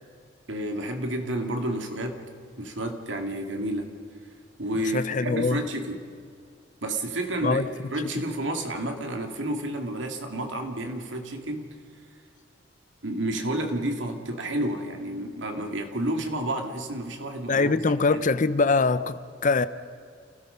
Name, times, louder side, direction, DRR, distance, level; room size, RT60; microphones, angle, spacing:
voice 1, 0.5-2.2 2.6-3.9 4.6-6.1 6.8-7.6 7.9-11.8 13.0-17.7 18.1-18.3, right 1 dB, 75° right, 2.3 m, -30 dB
voice 2, 4.7-5.6 7.4-7.7 8.0-8.1 17.5-19.7, left 4 dB, 40° left, 0.6 m, -23 dB
29.0 x 16.5 x 5.6 m
head